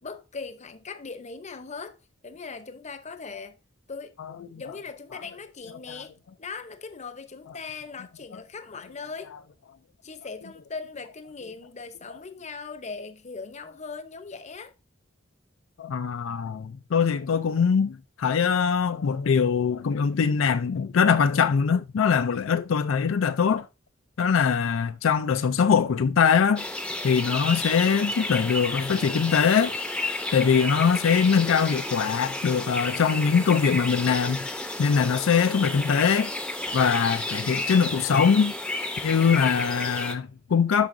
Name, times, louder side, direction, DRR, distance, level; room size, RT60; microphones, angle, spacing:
voice 1, 0.0-2.0 2.2-3.6 3.9-4.2 4.5-9.4 10.0-14.7, left 4 dB, 35° left, 0.7 m, -39 dB
voice 2, 15.8-23.7 24.2-26.7 27.0-29.7 30.3-34.5 34.8-36.3 36.7-38.5 39.0-40.9, left 6 dB, 80° left, 0.4 m, -22 dB
sound 1, 26.6-40.1, left 1 dB, 5° left, 0.7 m, -32 dB
12.0 x 4.8 x 2.6 m
head